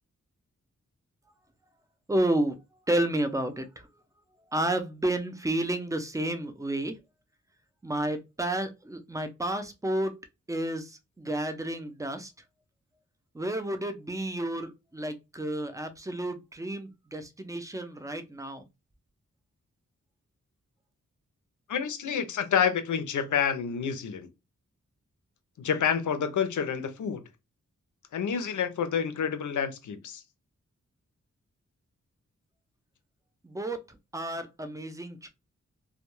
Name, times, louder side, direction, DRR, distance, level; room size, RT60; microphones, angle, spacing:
voice 1, 2.1-2.6 2.9-3.9 4.5-7.0 7.8-10.1 10.5-12.3 13.3-18.7 33.4-33.8 34.1-35.3, right 1 dB, 10° right, 0.4 m, -31 dB
voice 2, 21.7-24.3 25.6-27.2 28.1-30.2, left 7 dB, 85° left, 0.5 m, -28 dB
2.2 x 2.2 x 3.0 m
wide cardioid pair, 105°, 30 cm